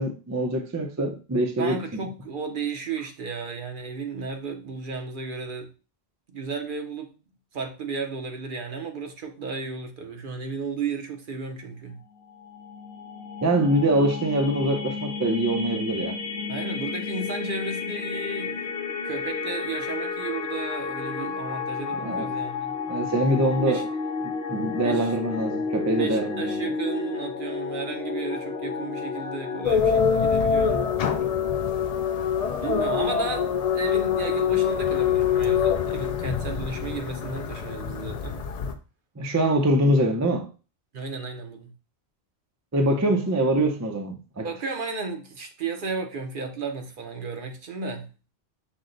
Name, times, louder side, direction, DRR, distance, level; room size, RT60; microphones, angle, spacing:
voice 1, 0.0-2.0 13.4-16.2 22.0-22.3 22.9-23.9 24.2-26.7 39.2-40.5 42.7-44.5, right 1 dB, 25° right, 0.4 m, -24 dB
voice 2, 1.6-5.7 6.3-7.1 7.5-12.0 16.5-18.7 19.0-22.8 23.7-23.8 24.8-25.1 26.0-30.9 32.6-38.4 40.9-41.7 44.4-48.1, right 4 dB, 55° right, 0.8 m, -34 dB
sound 1, 12.1-29.7, left 5 dB, 70° left, 0.9 m, -32 dB
sound 2, 29.6-38.7, left 7 dB, 55° left, 0.4 m, -24 dB
6.1 x 2.1 x 3.8 m
omnidirectional pair, 1.1 m